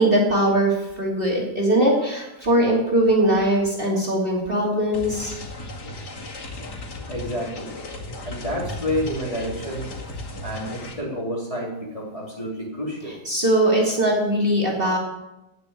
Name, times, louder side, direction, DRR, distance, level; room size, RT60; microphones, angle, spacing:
voice 1, 0.0-5.3 13.3-15.0, right 1 dB, 30° right, -3 dB, 3.1 m, -20 dB
sound 1, 4.9-10.9, left 2 dB, 75° left, 3.1 m, -36 dB
voice 2, 7.1-7.8 8.2-9.9 10.4-13.2, equal, 20° left, -3 dB, 3.6 m, -29 dB
18.0 x 6.2 x 8.4 m, 0.95 s
omnidirectional pair, 1.8 m